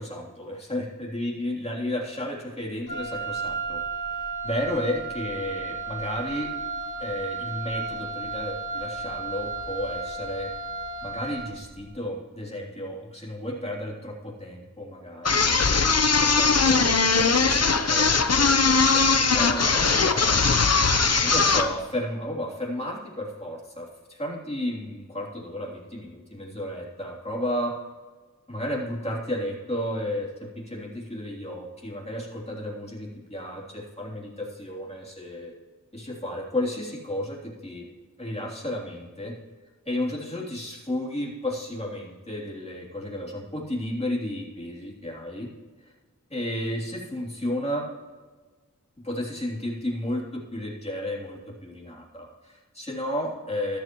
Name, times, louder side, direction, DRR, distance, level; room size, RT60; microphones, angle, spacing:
voice 1, 0.0-3.8 4.1-6.5 7.0-10.5 11.0-15.6 16.2-20.4 21.2-27.7 28.5-35.5 35.9-37.8 38.2-39.3 39.8-45.5 45.8-45.9 46.3-47.9 49.0-53.8, left 1 dB, 20° left, -3 dB, 3.3 m, -33 dB
Wind instrument woodwind instrument, 2.9-11.6, right 4 dB, 70° left, 2.6 m, -33 dB
sound 1, 15.3-21.7, left 4 dB, 50° left, 0.8 m, -20 dB
13.5 x 12.5 x 3.1 m, 1.3 s
wide cardioid pair, 50°, 32 cm